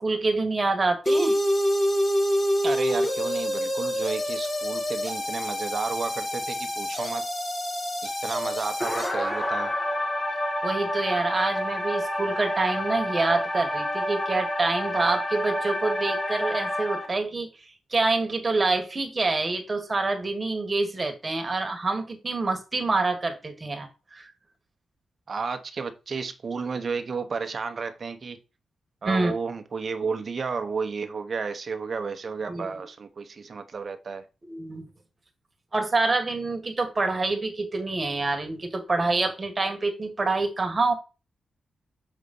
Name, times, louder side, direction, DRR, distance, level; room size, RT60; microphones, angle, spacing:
voice 1, 0.0-1.4 10.6-17.5 17.9-24.3 29.0-29.3 32.5-32.8 34.5-34.9 35.7-40.9, right 3 dB, 25° right, 1.5 m, -26 dB
sound 1, 1.1-17.1, equal, 25° left, 1.6 m, -27 dB
voice 2, 2.6-7.3 8.0-9.7 25.3-28.4 29.0-34.3, right 5 dB, 40° right, 0.9 m, -32 dB
6.3 x 4.0 x 5.4 m
wide cardioid pair, 155°, 0 cm